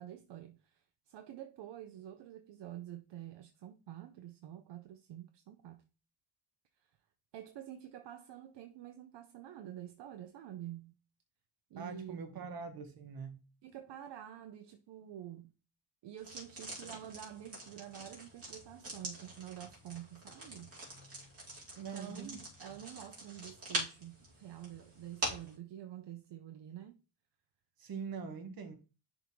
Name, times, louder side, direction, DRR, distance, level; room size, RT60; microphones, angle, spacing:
voice 1, 0.0-5.8 6.9-7.0 7.3-10.9 11.7-12.2 13.6-15.5 16.0-20.7 21.8-27.0, right 11 dB, 70° right, 0.7 m, -48 dB
voice 2, 11.8-13.4 21.8-22.4 22.7-22.8 27.8-28.8, right 5 dB, 55° right, 1.4 m, -43 dB
sound 1, 16.2-25.5, right 1 dB, 35° right, 2.5 m, -44 dB
10.5 x 3.6 x 3.1 m
wide cardioid pair, 170°, 43 cm